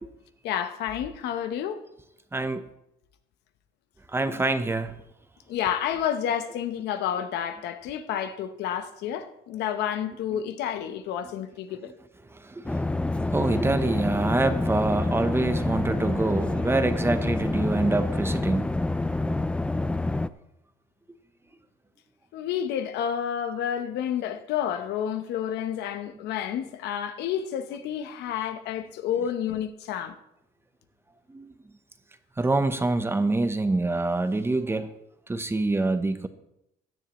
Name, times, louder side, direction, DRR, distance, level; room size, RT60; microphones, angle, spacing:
voice 1, 0.4-1.8 5.5-11.9 22.3-30.1, left 9 dB, 80° left, 0.9 m, -30 dB
voice 2, 2.3-2.6 4.1-4.9 12.4-18.7 31.3-31.5 32.4-34.9 35.3-36.3, right 2 dB, 15° right, 0.8 m, -26 dB
sound 1, 12.7-20.3, left 2 dB, 5° left, 0.4 m, -27 dB
16.0 x 10.0 x 3.0 m
cardioid pair, 110°, 17 cm